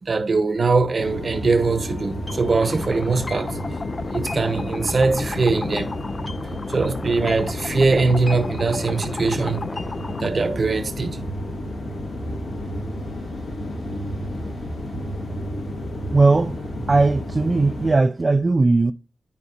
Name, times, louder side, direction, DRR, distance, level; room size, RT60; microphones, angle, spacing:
voice 1, 0.0-3.6 4.1-5.9 6.7-9.6 10.2-11.2, right 4 dB, 55° right, 1.2 m, -21 dB
sound 1, 1.0-17.9, left 1 dB, 80° left, 2.1 m, -31 dB
sound 2, 2.3-10.3, left 3 dB, 40° left, 0.4 m, -33 dB
voice 2, 16.1-16.6 16.9-18.9, right 3 dB, 40° right, 0.5 m, -18 dB
11.5 x 4.0 x 2.7 m
cardioid pair, 45°, 0 cm